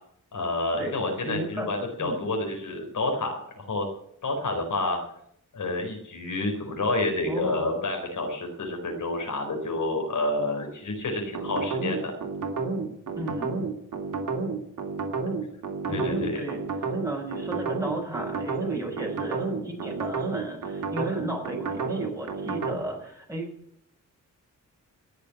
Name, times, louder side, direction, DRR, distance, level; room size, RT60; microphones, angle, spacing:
voice 1, 0.3-3.9 4.2-5.0 5.5-12.1 15.9-16.4, left 2 dB, 70° left, 2 dB, 4.2 m, -29 dB
voice 2, 1.2-1.7 2.0-2.3 7.3-7.8 13.2-13.7 15.9-16.6 16.9-23.5, right 1 dB, 10° right, 0 dB, 5.5 m, -35 dB
sound 1, 11.3-22.8, right 4 dB, 70° right, 2.7 m, -30 dB
17.5 x 6.9 x 9.5 m, 0.72 s
cardioid pair, 90°, 32 cm